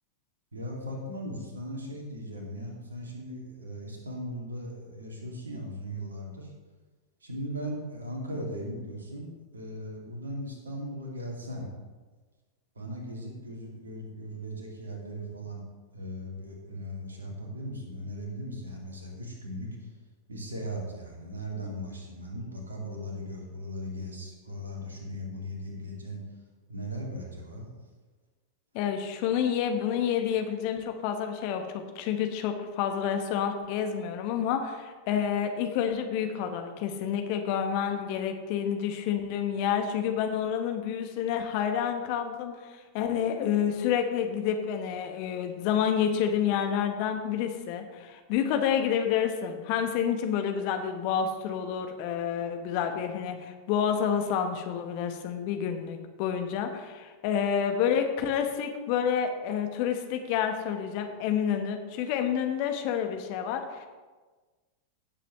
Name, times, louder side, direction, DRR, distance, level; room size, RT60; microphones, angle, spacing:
voice 1, 0.5-6.5 7.2-11.7 12.8-15.6 15.9-19.9 20.3-26.2 26.7-27.7, equal, 75° right, 0 dB, 2.4 m, -38 dB
voice 2, 28.7-63.9, left 8 dB, 45° left, 6 dB, 1.2 m, -29 dB
16.0 x 7.4 x 3.2 m, 1.3 s
figure-of-eight pair, 90°, 0 cm